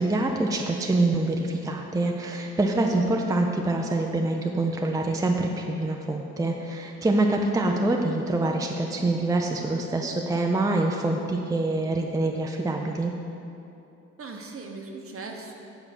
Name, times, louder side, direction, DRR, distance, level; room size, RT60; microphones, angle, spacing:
voice 1, 0.0-13.1, right 2 dB, 10° right, 2 dB, 0.5 m, -25 dB
voice 2, 2.8-3.1 7.6-7.9 14.2-15.5, right 3 dB, 45° right, 2 dB, 1.1 m, -40 dB
8.0 x 4.4 x 6.0 m, 2.7 s
cardioid pair, 90°, 30 cm